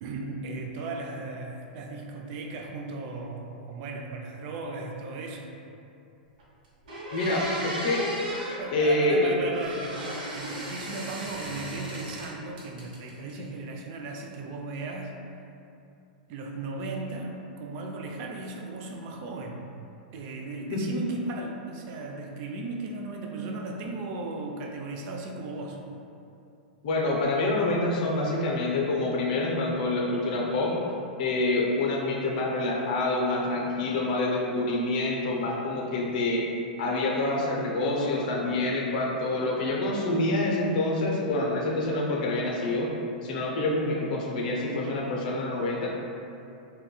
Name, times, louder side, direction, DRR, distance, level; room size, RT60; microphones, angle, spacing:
voice 1, 0.0-5.6 8.5-15.1 16.3-19.7 20.1-25.8, right 3 dB, 50° right, 1 dB, 0.4 m, -36 dB
sound 1, 6.4-6.5 6.9-8.6 9.5-12.3 12.6-13.3, equal, 70° right, 0.7 m, -35 dB
voice 2, 7.1-8.1 8.7-9.4 20.7-20.9 26.8-30.8 31.2-36.4 36.8-42.9 43.2-45.9, left 2 dB, 60° left, -2 dB, 0.5 m, -27 dB
3.5 x 2.2 x 2.2 m, 2.7 s
hypercardioid pair, 110°, 5 cm